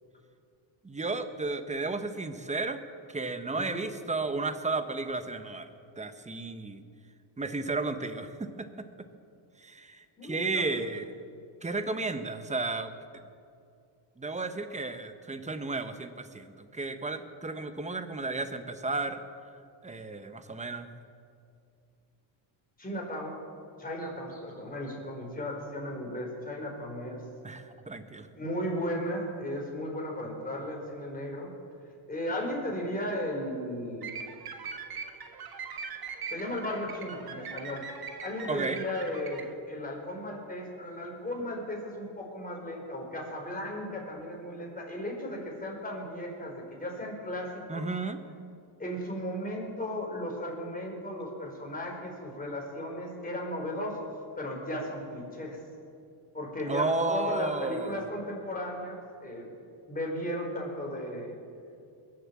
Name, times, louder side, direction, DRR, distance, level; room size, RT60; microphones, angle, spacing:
voice 1, 0.8-2.8 3.1-5.7 6.0-6.8 7.4-8.9 9.6-11.1 11.6-12.9 14.2-19.2 19.8-20.9 27.4-28.3 38.5-38.8 47.7-48.2 56.7-58.0, right 3 dB, 15° right, 9 dB, 1.0 m, -33 dB
voice 2, 10.2-10.8 22.8-23.4 23.8-27.2 28.4-31.6 32.1-34.1 36.3-37.8 38.2-47.8 48.8-54.0 54.4-55.6 56.3-59.5 59.9-61.3, left 1 dB, 15° left, -1 dB, 4.3 m, -35 dB
sound 1, 34.0-39.5, right 5 dB, 50° right, 1.6 m, -41 dB
21.0 x 7.7 x 7.2 m, 2.5 s
cardioid pair, 110°, 48 cm